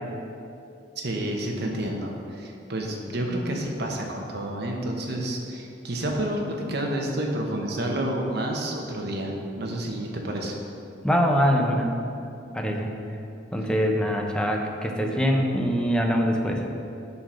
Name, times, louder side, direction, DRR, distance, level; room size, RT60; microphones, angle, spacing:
voice 1, 1.0-10.5 13.6-13.7, right 1 dB, 60° right, 0 dB, 1.2 m, -29 dB
voice 2, 11.0-11.9 12.5-12.9 13.5-16.6, equal, 5° left, 1 dB, 0.7 m, -23 dB
9.4 x 4.3 x 6.3 m, 2.7 s
head